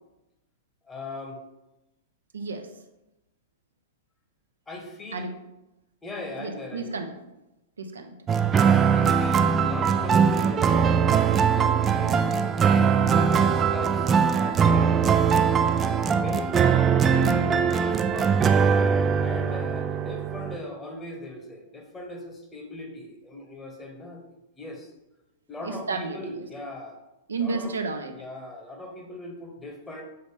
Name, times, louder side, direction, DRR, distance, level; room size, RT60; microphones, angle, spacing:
voice 1, 0.8-1.4 4.7-5.3 6.0-7.0 8.6-11.0 11.3-12.3 13.1-15.1 15.8-18.6 19.2-24.2 24.6-24.9 25.5-27.0 27.4-27.7 28.1-30.0, left 1 dB, 15° left, 1 dB, 1.2 m, -39 dB
voice 2, 2.3-2.7 5.1-5.3 6.4-7.2 7.8-8.2 25.6-26.2 27.3-28.1, right 4 dB, 75° right, 5 dB, 0.6 m, -31 dB
sound 1, 8.3-20.6, right 6 dB, 25° right, 0.3 m, -21 dB
6.7 x 4.0 x 3.5 m, 0.95 s
figure-of-eight pair, 100°, 0 cm